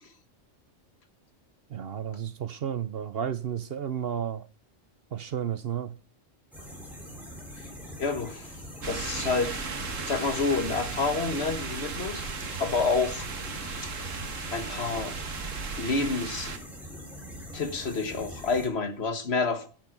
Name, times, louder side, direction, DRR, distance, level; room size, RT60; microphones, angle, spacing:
voice 1, 1.7-4.5 5.1-6.0, right 9 dB, 55° right, 0.9 m, -32 dB
sound 1, 6.5-18.7, equal, ahead, 4.1 m, -43 dB
voice 2, 8.0-9.6 10.1-12.3 12.6-13.3 14.5-15.2 15.8-16.6 17.5-19.7, left 4 dB, 55° left, 1.7 m, -29 dB
sound 2, 8.8-16.6, right 4 dB, 85° right, 1.9 m, -36 dB
10.5 x 9.1 x 6.5 m
omnidirectional pair, 1.3 m